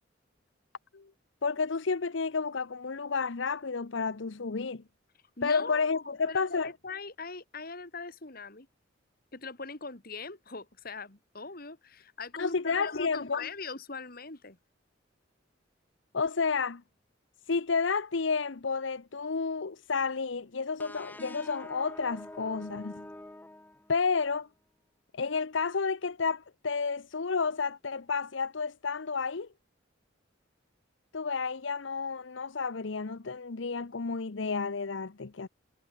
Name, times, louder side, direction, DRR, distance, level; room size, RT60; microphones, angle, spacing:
voice 1, 1.4-4.8 5.4-6.7 12.4-13.5 16.1-16.8 17.5-23.1 23.9-24.5 25.1-29.5 31.1-35.5, left 4 dB, 75° left, 0.8 m, -31 dB
voice 2, 5.4-8.7 9.3-14.6, left 4 dB, 50° left, 2.9 m, -41 dB
sound 1, 20.8-24.3, left 1 dB, 10° left, 0.6 m, -46 dB
head